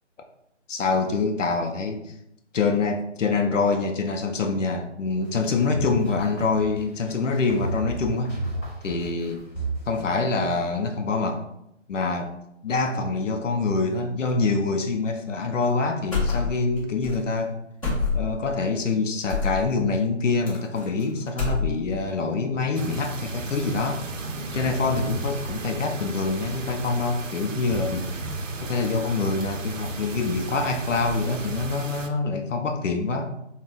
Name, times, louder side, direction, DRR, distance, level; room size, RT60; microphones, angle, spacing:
voice 1, 0.7-2.1 2.5-8.4 8.8-9.4 9.9-11.4 11.9-12.3 12.6-17.5 18.1-24.0 24.5-28.2 28.6-33.3, left 4 dB, 80° left, 4 dB, 0.5 m, -25 dB
sound 1, 5.2-10.6, right 1 dB, 10° left, 1.2 m, -33 dB
sound 2, 16.1-16.8 17.0-17.2 17.8-18.4 19.3-19.6 20.5-21.0 21.3-22.0, left 4 dB, 25° left, 1.0 m, -26 dB
sound 3, 22.7-32.1, right 2 dB, 90° right, 0.5 m, -34 dB
3.7 x 2.1 x 2.5 m, 0.82 s
figure-of-eight pair, 160°, 37 cm